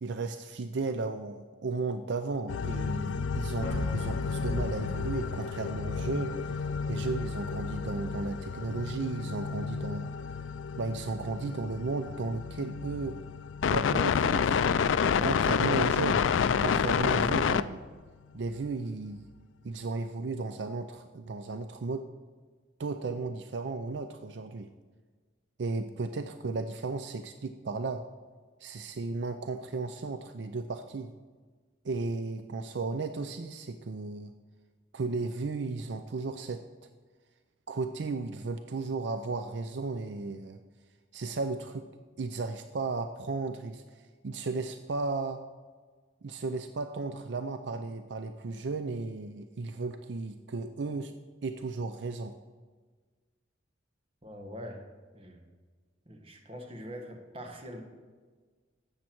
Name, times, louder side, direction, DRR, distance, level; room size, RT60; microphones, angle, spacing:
voice 1, 0.0-10.1 10.8-13.2 13.7-14.6 15.2-16.2 16.6-17.8 18.3-19.3 19.6-22.1 22.8-24.7 25.6-28.0 28.6-31.1 31.8-34.3 34.9-36.6 37.7-40.6 41.1-41.9 42.2-45.4 46.2-51.1 51.4-52.3, right 3 dB, 65° right, 8 dB, 0.5 m, -34 dB
sound 1, 2.5-17.6, left 6 dB, 90° left, 0.4 m, -30 dB
sound 2, 3.6-11.6, equal, 35° left, 2.2 m, -44 dB
voice 2, 54.2-54.9 55.1-55.4 56.0-57.8, equal, 30° right, 3 dB, 1.4 m, -43 dB
12.5 x 8.3 x 4.5 m, 1.5 s
head